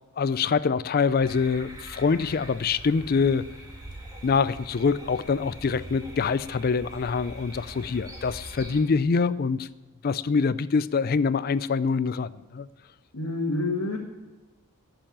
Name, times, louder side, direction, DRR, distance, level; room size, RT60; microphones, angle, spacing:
voice 1, 0.2-3.5 4.2-9.7 10.0-12.7, left 5 dB, 40° left, 16 dB, 0.4 m, -25 dB
sound 1, 1.2-8.8, right 1 dB, 15° right, 2.0 m, -43 dB
voice 2, 13.1-14.0, left 2 dB, 70° left, -2 dB, 1.4 m, -27 dB
11.5 x 6.8 x 8.8 m, 1.2 s
head